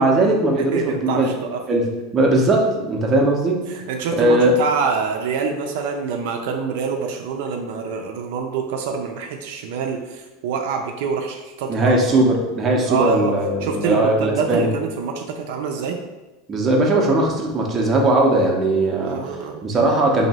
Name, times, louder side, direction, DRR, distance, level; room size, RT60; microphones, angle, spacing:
voice 1, 0.0-1.3 1.7-1.9 2.1-3.6 4.1-4.5 11.7-14.7 16.5-20.3, right 2 dB, 20° right, 0 dB, 0.6 m, -19 dB
voice 2, 0.7-1.6 3.7-12.2 12.9-13.3 13.6-16.0 19.0-19.7, right 5 dB, 65° right, 3 dB, 0.4 m, -26 dB
3.0 x 2.6 x 4.1 m, 1.1 s
supercardioid pair, 160°, 0 cm